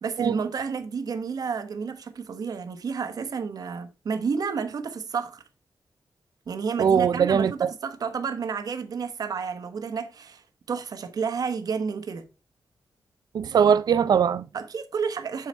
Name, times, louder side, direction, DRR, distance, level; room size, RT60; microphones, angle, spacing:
voice 1, 0.0-5.4 6.5-10.4 10.7-12.2 14.5-15.5, right 5 dB, 65° right, 1.1 m, -30 dB
voice 2, 6.8-7.7 13.3-14.4, right 7 dB, 85° right, 0.6 m, -21 dB
7.6 x 4.9 x 5.2 m
wide cardioid pair, 135°, 7 cm